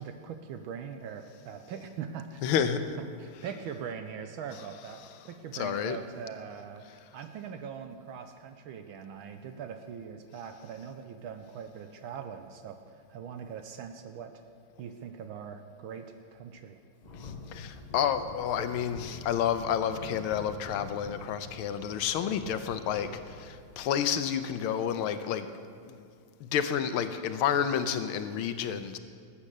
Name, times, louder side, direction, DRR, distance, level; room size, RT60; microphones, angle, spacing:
voice 1, 0.0-2.7 3.2-14.3 14.8-16.8, right 7 dB, 75° right, 6 dB, 1.5 m, -41 dB
voice 2, 2.4-2.8 5.6-6.0 17.2-25.5 25.9-26.0 26.4-29.0, left 8 dB, 85° left, 10 dB, 1.6 m, -30 dB
sound 1, 17.0-24.4, left 3 dB, 35° left, 0.7 m, -46 dB
20.0 x 8.6 x 6.6 m, 2.3 s
omnidirectional pair, 2.3 m